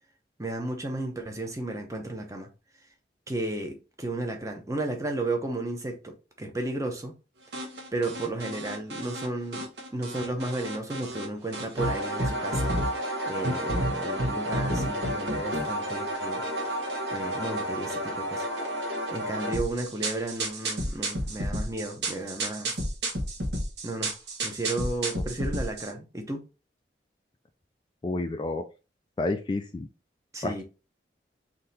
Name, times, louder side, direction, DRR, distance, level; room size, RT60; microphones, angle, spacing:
voice 1, 0.4-2.5 3.3-7.1 7.9-16.4 17.1-18.5 19.1-22.7 23.8-24.1 24.4-26.4 30.3-30.6, right 2 dB, 20° right, 0.8 m, -33 dB
sound 1, 7.5-9.3 9.5-11.3 11.5-25.9, right 1 dB, 80° right, 1.2 m, -31 dB
voice 2, 28.0-28.6 29.2-29.9 30.4-30.6, left 2 dB, 25° left, 0.3 m, -30 dB
3.8 x 2.8 x 4.1 m
head